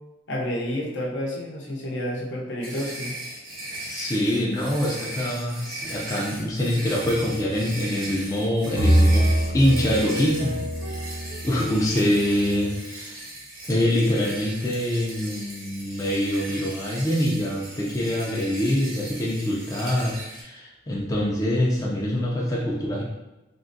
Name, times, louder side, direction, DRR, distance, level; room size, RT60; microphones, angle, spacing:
voice 1, 0.3-3.1, left 1 dB, 65° left, -2 dB, 0.6 m, -30 dB
sound 1, 2.6-20.4, right 1 dB, 80° right, 1.0 m, -38 dB
voice 2, 3.9-9.3 9.5-10.5 11.0-11.1 11.4-13.2 13.7-23.0, left 1 dB, 15° left, -4 dB, 0.4 m, -24 dB
sound 2, 7.0-7.9 8.8-12.7, equal, 55° right, 0.6 m, -24 dB
3.5 x 2.1 x 2.6 m, 1.0 s
head